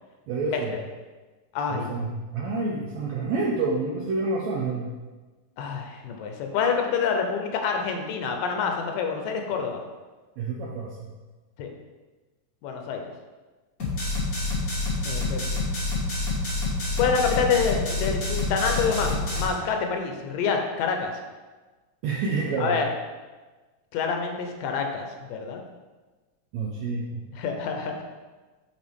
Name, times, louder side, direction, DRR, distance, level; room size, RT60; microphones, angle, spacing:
voice 1, 0.3-0.8 1.7-4.9 10.4-11.1 22.0-22.8 26.5-27.2, right 3 dB, 80° right, -2 dB, 1.6 m, -28 dB
voice 2, 1.5-1.9 5.6-9.8 11.6-11.7 12.6-13.0 15.1-15.6 17.0-21.1 22.6-22.9 23.9-25.6 27.3-28.0, left 5 dB, 85° left, 3 dB, 2.4 m, -27 dB
sound 1, 13.8-19.4, left 2 dB, 60° left, 0.9 m, -27 dB
7.9 x 4.7 x 3.6 m, 1.3 s
omnidirectional pair, 3.9 m